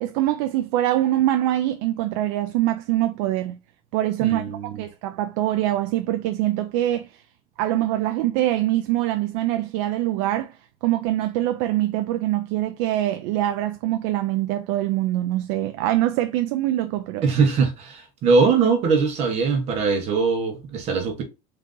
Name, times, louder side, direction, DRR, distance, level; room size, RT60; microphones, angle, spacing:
voice 1, 0.0-3.6 3.9-7.2 7.6-17.2, right 14 dB, 70° right, 0.4 m, -24 dB
voice 2, 4.2-4.8 17.2-21.2, right 5 dB, 40° right, 1.0 m, -21 dB
3.8 x 2.8 x 3.7 m
cardioid pair, 175°, 17 cm